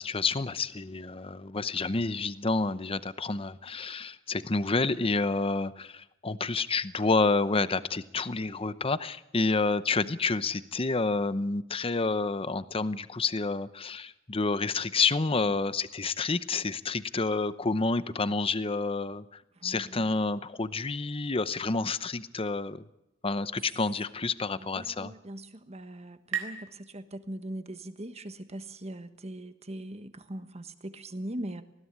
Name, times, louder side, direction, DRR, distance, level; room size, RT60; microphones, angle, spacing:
voice 1, 0.0-19.2 19.6-22.8 23.2-25.1, left 3 dB, 30° left, 14 dB, 0.8 m, -29 dB
voice 2, 19.6-20.1 24.6-31.6, right 1 dB, 35° right, 10 dB, 1.3 m, -41 dB
sound 1, 24.9-28.2, right 8 dB, 85° right, 3.9 m, -42 dB
20.0 x 16.0 x 9.8 m, 0.89 s
head